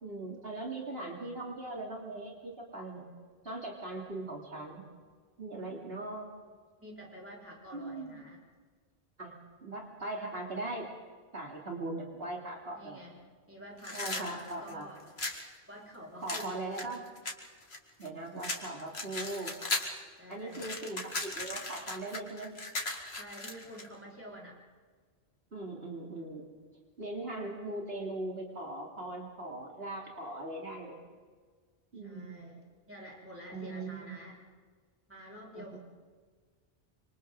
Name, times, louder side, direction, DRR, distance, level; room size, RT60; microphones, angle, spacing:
voice 1, 0.0-3.0 3.4-4.8 5.4-6.3 7.7-8.2 9.2-10.9 11.3-13.0 13.9-14.9 16.2-17.0 18.0-19.5 20.3-22.5 25.5-26.5 27.0-31.0 31.9-32.5 33.5-34.1 35.5-35.8, right 2 dB, 75° right, -1 dB, 3.5 m, -40 dB
voice 2, 6.8-8.4 12.7-13.2 13.5-15.0 15.7-16.9 20.2-20.7 23.1-24.6 32.0-34.4 35.1-35.8, equal, 10° right, -4 dB, 5.1 m, -48 dB
sound 1, 13.8-15.4 16.3-18.1 18.4-20.0 20.3-23.9, left 2 dB, 90° left, 2.6 m, -37 dB
27.0 x 26.0 x 3.9 m, 1.5 s
omnidirectional pair, 1.0 m